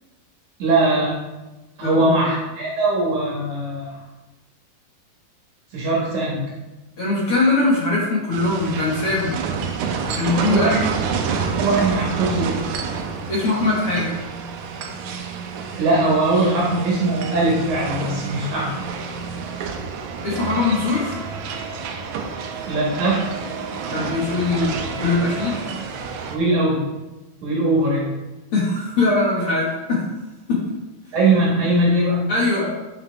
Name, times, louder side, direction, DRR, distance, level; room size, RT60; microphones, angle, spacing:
voice 1, 0.6-1.2 1.8-4.0 5.7-6.4 10.5-10.9 11.6-12.6 15.8-18.7 22.7-23.2 26.3-26.8 27.4-28.1 31.1-32.3, right 2 dB, 60° right, -4 dB, 2.6 m, -20 dB
voice 2, 1.8-2.2 7.0-9.4 10.1-10.8 13.3-14.2 20.2-21.2 23.9-25.7 28.5-30.1 30.5-30.7 32.3-32.6, left 3 dB, 55° left, -6 dB, 1.6 m, -21 dB
sound 1, 8.3-26.4, right 5 dB, 85° right, 1.7 m, -29 dB
9.0 x 5.9 x 3.4 m, 1.1 s
omnidirectional pair, 4.3 m